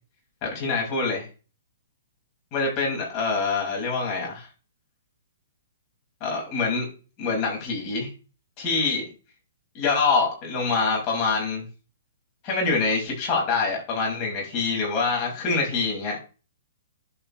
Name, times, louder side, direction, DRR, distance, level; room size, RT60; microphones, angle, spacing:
voice 1, 0.4-1.3 2.5-4.5 6.2-6.9 7.2-8.1 8.6-9.0 9.7-11.6 12.4-16.2, left 4 dB, 35° left, -1 dB, 5.6 m, -25 dB
11.0 x 5.9 x 3.3 m, 0.34 s
hypercardioid pair, 125°, 0 cm